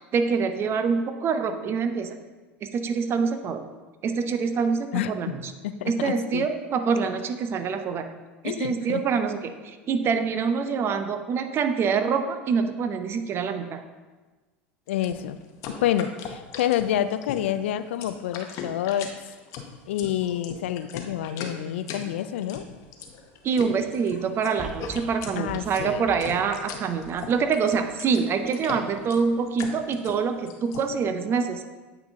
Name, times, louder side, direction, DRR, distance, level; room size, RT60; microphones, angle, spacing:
voice 1, 0.0-2.2 2.6-3.6 4.0-5.5 5.9-8.1 8.4-13.8 23.4-31.7, right 5 dB, 40° right, 8 dB, 0.6 m, -25 dB
voice 2, 4.9-5.3 5.6-6.5 8.4-9.0 14.9-15.4 15.7-19.1 19.9-22.6 25.4-26.1, left 11 dB, 75° left, 12 dB, 0.3 m, -28 dB
sound 1, 14.9-30.9, left 6 dB, 55° left, 0.8 m, -39 dB
sound 2, 24.6-27.9 28.4-28.5, right 2 dB, 10° right, 1.1 m, -43 dB
8.6 x 4.0 x 3.5 m, 1.3 s
hypercardioid pair, 80°, 6 cm